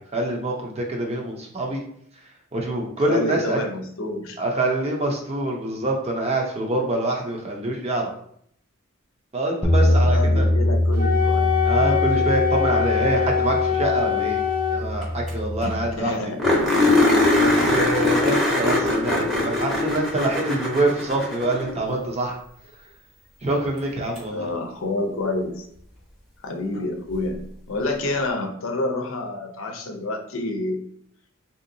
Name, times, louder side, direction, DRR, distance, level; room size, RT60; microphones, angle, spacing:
voice 1, 0.1-1.8 2.5-3.6 4.4-8.0 9.3-10.5 11.6-14.4 14.7-16.2 17.4-22.3 23.4-24.5, right 2 dB, 30° right, 0 dB, 0.6 m, -25 dB
voice 2, 3.1-4.4 9.8-11.6 15.6-15.7 16.0-16.4 19.0-19.6 24.3-25.6 26.4-27.4 27.7-30.8, left 2 dB, 70° left, 4 dB, 0.6 m, -28 dB
sound 1, 9.6-15.9, left 1 dB, 15° left, 0.3 m, -23 dB
Wind instrument woodwind instrument, 10.9-14.8, left 8 dB, 75° right, 1.4 m, -23 dB
sound 2, 15.0-15.1 15.3-15.4 15.7-15.8 16.4-21.8 24.2-24.3 27.1-27.2, left 2 dB, ahead, 0.8 m, -21 dB
3.6 x 2.8 x 2.6 m, 0.67 s
head